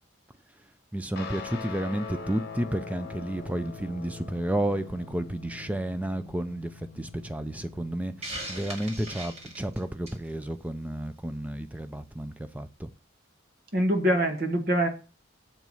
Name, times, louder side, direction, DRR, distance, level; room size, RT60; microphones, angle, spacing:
voice 1, 0.9-12.9, right 1 dB, 5° right, 0.4 m, -32 dB
Guitar, 1.2-9.9, left 5 dB, 50° left, 1.1 m, -43 dB
Hiss, 8.2-10.3, right 1 dB, 30° right, 1.8 m, -39 dB
voice 2, 13.7-14.9, right 1 dB, 50° right, 1.4 m, -24 dB
6.8 x 4.7 x 5.4 m
head